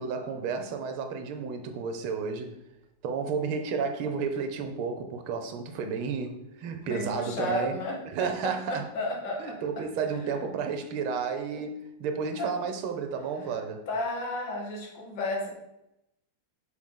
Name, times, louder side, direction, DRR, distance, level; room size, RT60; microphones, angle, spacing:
voice 1, 0.0-2.5 3.0-8.8 9.4-13.9, right 5 dB, 85° right, 1.6 m, -32 dB
voice 2, 6.9-9.6 12.4-12.5 13.9-15.5, left 1 dB, 60° left, 1.8 m, -33 dB
6.3 x 4.4 x 3.7 m
omnidirectional pair, 2.3 m